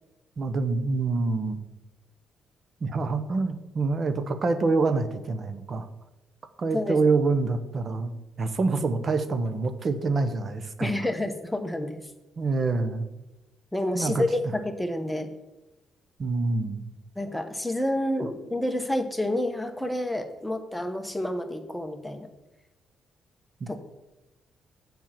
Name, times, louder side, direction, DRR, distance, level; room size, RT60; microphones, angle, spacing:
voice 1, 0.4-1.6 2.8-5.9 6.6-8.1 8.4-10.9 12.4-13.0 13.9-14.5 16.2-16.9 23.6-23.7, right 3 dB, 45° right, 10 dB, 1.0 m, -26 dB
voice 2, 10.8-12.0 13.7-15.3 17.2-22.3 23.7-23.8, left 1 dB, 5° left, 6 dB, 1.1 m, -29 dB
7.5 x 5.6 x 7.4 m, 1.0 s
cardioid pair, 90°, 0 cm